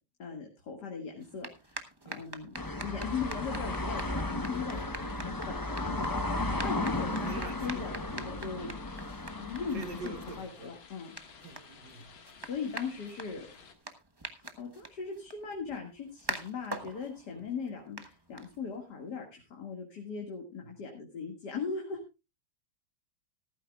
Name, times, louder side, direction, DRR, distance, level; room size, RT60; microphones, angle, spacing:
voice 1, 0.2-2.5 2.8-6.2 6.6-8.8 9.3-11.1 12.4-13.5 14.2-22.0, left 5 dB, 55° left, 2 dB, 2.6 m, -39 dB
sound 1, 1.2-18.9, right 2 dB, 20° right, 0.8 m, -46 dB
sound 2, 2.5-10.4, left 2 dB, 35° left, 0.3 m, -35 dB
sound 3, 3.0-13.8, left 5 dB, 85° left, 2.6 m, -54 dB
voice 2, 7.2-8.3 8.6-8.7 9.7-10.7 11.4-12.0 17.3-17.5 20.6-20.7, right 4 dB, 65° right, 6 dB, 2.6 m, -45 dB
15.5 x 14.5 x 2.4 m, 0.27 s
omnidirectional pair, 2.2 m